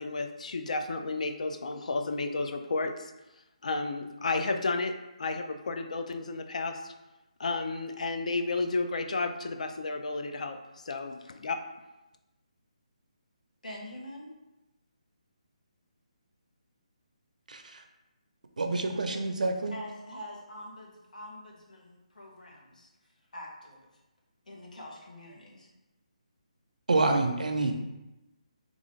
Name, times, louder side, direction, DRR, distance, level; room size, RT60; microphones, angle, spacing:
voice 1, 0.0-3.1 3.6-6.9 7.4-11.6, left 3 dB, 65° left, 7 dB, 0.4 m, -32 dB
voice 2, 13.6-14.3 19.7-22.9 23.3-23.9 24.5-25.7, left 1 dB, 90° left, -2 dB, 1.1 m, -45 dB
voice 3, 17.5-17.8 18.6-19.8 26.9-27.7, right 2 dB, 85° right, 5 dB, 0.5 m, -27 dB
3.7 x 2.5 x 3.1 m, 0.99 s
hypercardioid pair, 165°, 4 cm